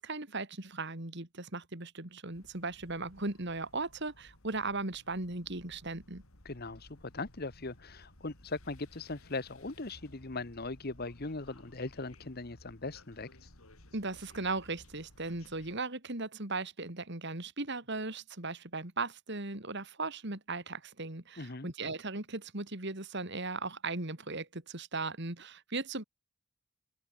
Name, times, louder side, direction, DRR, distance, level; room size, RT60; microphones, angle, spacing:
voice 1, 0.0-6.2 13.9-26.0, right 3 dB, 55° right, 2.9 m, -37 dB
sound 1, 2.3-15.8, left 1 dB, 80° left, 5.1 m, -58 dB
voice 2, 6.4-13.3 21.4-21.7, left 3 dB, 45° left, 1.3 m, -39 dB
open air
head